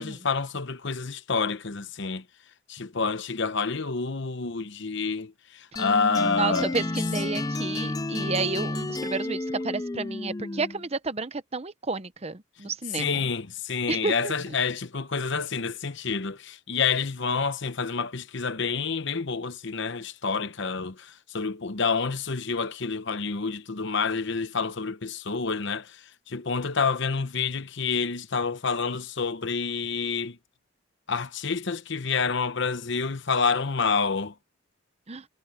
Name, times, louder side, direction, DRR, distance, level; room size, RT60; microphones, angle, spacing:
voice 1, 0.0-2.2 2.7-6.7 12.9-30.4 31.1-34.3, left 5 dB, 55° left, 0.9 m, -28 dB
sound 1, 5.8-10.9, left 2 dB, 15° left, 0.4 m, -31 dB
voice 2, 6.2-13.2 13.9-14.3 35.1-35.3, right 4 dB, 30° right, 0.8 m, -31 dB
head